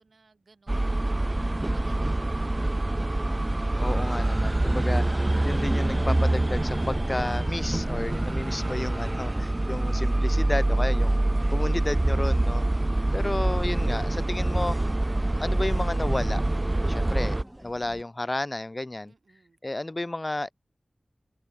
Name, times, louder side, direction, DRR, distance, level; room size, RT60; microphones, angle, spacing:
voice 1, 0.0-2.9 19.0-20.2, right 4 dB, 80° right, 6.1 m, -61 dB
sound 1, 0.7-17.4, right 1 dB, 35° right, 0.6 m, -25 dB
voice 2, 3.8-5.0 5.4-11.2 11.5-12.7 13.1-14.8 15.4-16.4 16.9-17.4 17.6-19.1 19.6-20.5, left 2 dB, 35° left, 0.5 m, -32 dB
sound 2, 4.0-18.0, right 1 dB, 15° right, 3.2 m, -47 dB
cardioid pair, 40°, 0 cm